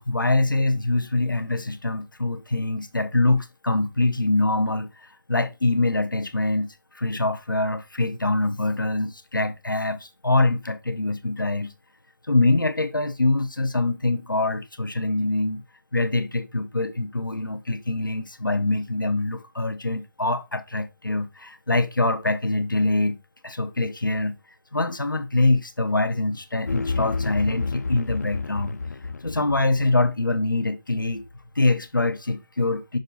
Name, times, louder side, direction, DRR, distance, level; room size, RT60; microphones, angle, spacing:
voice 1, 0.0-11.7 12.3-15.6 15.9-23.2 23.4-24.4 24.7-28.8 29.2-31.3 31.5-33.0, left 2 dB, 80° left, 1.0 m, -24 dB
sound 1, 26.7-30.1, left 4 dB, 55° left, 0.4 m, -30 dB
6.6 x 4.2 x 4.0 m
figure-of-eight pair, 155°, 11 cm